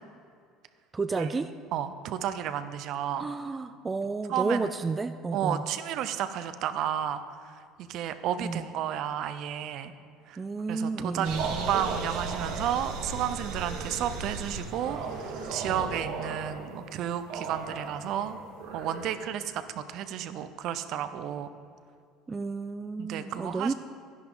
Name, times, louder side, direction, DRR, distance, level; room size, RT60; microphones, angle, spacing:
voice 1, 0.9-1.5 3.2-5.6 8.4-8.7 10.4-11.5 22.3-23.7, right 4 dB, 20° right, 9 dB, 0.3 m, -31 dB
voice 2, 1.7-3.3 4.3-4.7 5.3-9.9 10.3-10.4 10.7-18.4 18.7-21.5 23.0-23.7, right 10 dB, 60° right, 11 dB, 0.6 m, -32 dB
sound 1, 11.2-19.1, right 4 dB, 80° right, 1.8 m, -36 dB
11.5 x 10.5 x 3.9 m, 2.3 s
cardioid pair, 125°, 0 cm